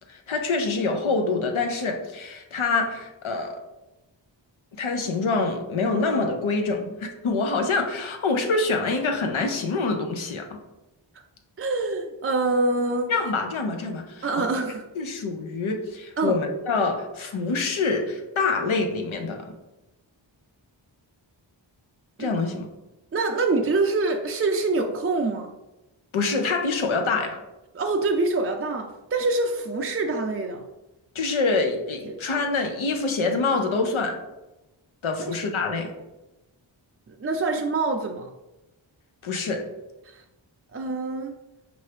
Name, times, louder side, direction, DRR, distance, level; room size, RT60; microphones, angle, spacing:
voice 1, 0.1-3.6 4.8-10.6 13.1-14.5 15.0-19.5 22.2-22.7 26.1-27.4 31.1-34.2 35.0-35.9 39.2-39.6, left 3 dB, 85° left, 4 dB, 0.7 m, -26 dB
voice 2, 11.6-13.1 14.2-14.9 16.2-16.4 22.2-22.3 23.1-25.5 27.7-30.7 32.1-32.2 37.2-38.3 40.1-40.2 40.7-41.3, right 3 dB, 30° right, 2 dB, 0.4 m, -25 dB
4.5 x 2.7 x 3.3 m, 1.0 s
cardioid pair, 45°, 47 cm